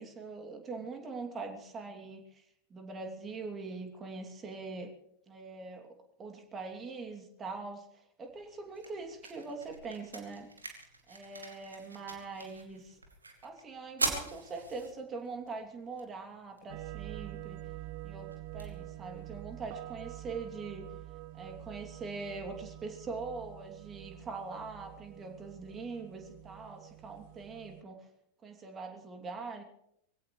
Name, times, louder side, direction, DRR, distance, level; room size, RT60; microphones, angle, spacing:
voice 1, 0.0-2.4 2.7-4.9 5.3-5.9 6.2-7.8 8.2-10.5 11.1-13.0 13.4-17.6 18.0-20.8 21.3-28.0 28.4-29.6, right 4 dB, 20° right, 4 dB, 2.8 m, -42 dB
sound 1, 8.2-20.2, right 3 dB, 80° right, 2.7 m, -43 dB
sound 2, 16.7-27.8, right 15 dB, 50° right, 0.8 m, -46 dB
23.5 x 16.5 x 3.3 m, 0.75 s
figure-of-eight pair, 90°, 0 cm